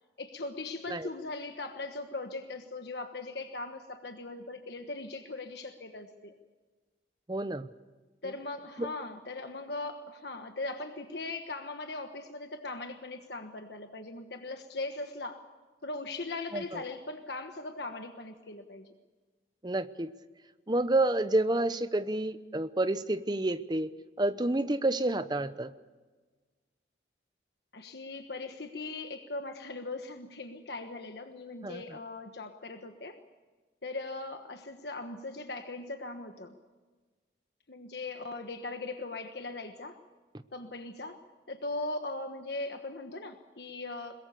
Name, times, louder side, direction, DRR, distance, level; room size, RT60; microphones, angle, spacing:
voice 1, 0.2-6.3 8.2-15.5 15.8-18.9 27.7-33.2 33.8-36.5 37.7-40.0 40.5-41.2 41.5-44.3, left 2 dB, 65° left, 6 dB, 1.3 m, -39 dB
voice 2, 7.3-7.7 8.8-8.9 16.5-16.6 19.6-20.1 20.7-23.9 24.2-25.7 31.6-31.8, right 2 dB, 25° right, 12 dB, 0.8 m, -29 dB
22.0 x 22.0 x 6.8 m, 1.3 s
head